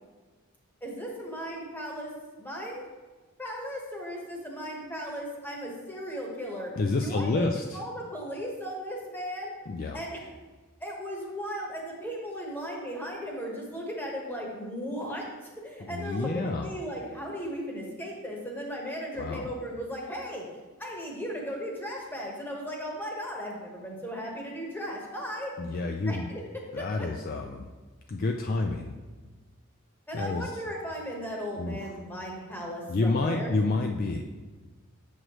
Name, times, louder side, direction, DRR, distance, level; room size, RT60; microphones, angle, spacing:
voice 1, 0.8-2.1 2.4-2.8 3.4-6.7 7.0-7.5 7.7-9.5 9.9-10.3 10.8-15.2 15.6-20.5 20.8-25.5 26.0-26.4 26.8-27.1 30.1-33.5, equal, 10° left, -1 dB, 1.1 m, -36 dB
voice 2, 6.8-7.8 9.7-10.0 15.9-16.7 19.1-19.5 25.6-26.3 26.7-27.7 28.1-28.9 30.1-30.5 31.6-31.9 32.9-34.2, left 3 dB, 40° left, 3 dB, 0.3 m, -29 dB
7.7 x 6.3 x 3.0 m, 1.3 s
head